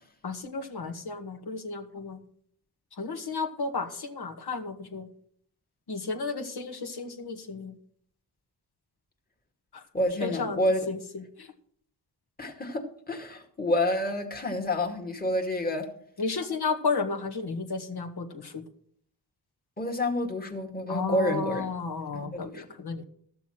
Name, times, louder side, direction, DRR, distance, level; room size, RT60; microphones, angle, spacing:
voice 1, 0.2-2.2 3.0-5.1 5.9-7.7 10.2-10.6 10.9-11.0 16.2-18.6 20.9-23.0, left 4 dB, 60° left, 4 dB, 2.0 m, -32 dB
voice 2, 9.9-10.9 12.4-15.9 19.8-21.7 22.1-22.6, left 1 dB, 20° left, 2 dB, 2.2 m, -29 dB
13.5 x 6.9 x 6.4 m, 0.63 s
cardioid pair, 60°, 44 cm